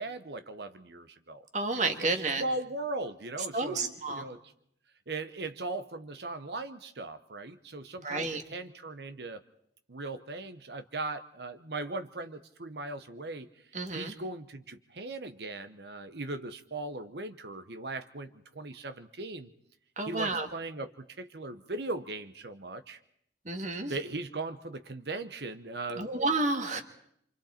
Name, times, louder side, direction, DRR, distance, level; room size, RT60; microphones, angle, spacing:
voice 1, 0.0-1.4 1.8-4.4 5.1-9.4 9.9-13.5 13.9-19.5 20.0-23.0 23.9-26.1, right 2 dB, 70° right, 10 dB, 1.0 m, -38 dB
voice 2, 1.5-2.4 3.5-4.3 8.0-8.4 13.7-14.1 20.0-20.5 23.5-23.9 26.0-26.8, right 3 dB, 45° right, 6 dB, 1.9 m, -30 dB
27.5 x 25.5 x 4.4 m, 0.69 s
head